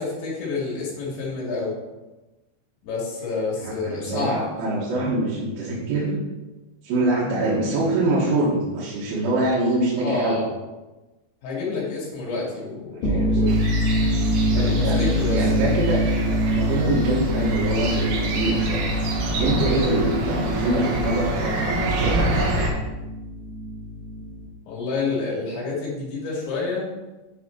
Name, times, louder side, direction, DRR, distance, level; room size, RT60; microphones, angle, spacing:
voice 1, 0.0-1.7 2.8-4.4 9.9-10.5 11.4-13.6 14.5-15.4 19.5-19.8 24.7-26.9, left 3 dB, 75° left, -5 dB, 4.4 m, -28 dB
voice 2, 3.6-6.2 6.8-10.4 13.0-13.6 14.6-18.9 19.4-22.4, right 2 dB, 90° right, -8 dB, 3.9 m, -24 dB
sound 1, 12.9-24.5, equal, 55° left, 2.1 m, -25 dB
sound 2, 13.5-22.7, right 1 dB, 65° right, 2.1 m, -27 dB
9.8 x 4.9 x 4.4 m, 1.1 s
omnidirectional pair, 5.4 m